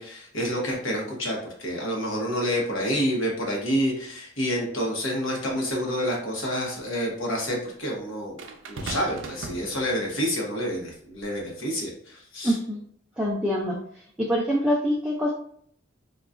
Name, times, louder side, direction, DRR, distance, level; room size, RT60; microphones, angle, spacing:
voice 1, 0.0-8.4 8.7-12.6, equal, 80° left, -1 dB, 1.0 m, -28 dB
sound 1, 8.4-10.3 11.2-11.4, right 3 dB, 75° right, 0.5 m, -38 dB
voice 2, 12.4-12.8 13.2-13.8 14.2-15.3, equal, 5° right, -4 dB, 0.3 m, -24 dB
3.8 x 2.3 x 2.4 m, 0.63 s
head